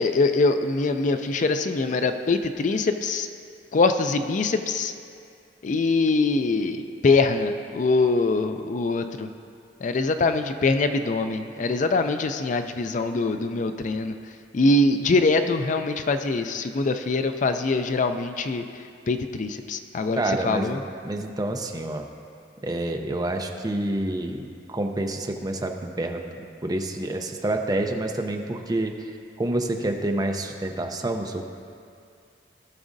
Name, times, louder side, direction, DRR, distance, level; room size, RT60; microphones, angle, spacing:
voice 1, 0.0-3.3 3.7-4.9 5.6-9.3 9.8-14.1 14.5-18.6 19.1-20.8, left 3 dB, 45° left, 8 dB, 0.4 m, -23 dB
voice 2, 20.2-20.8 21.0-22.0 22.6-28.9 29.4-31.5, right 1 dB, 20° right, 4 dB, 0.6 m, -28 dB
16.5 x 6.1 x 2.6 m, 2.4 s
head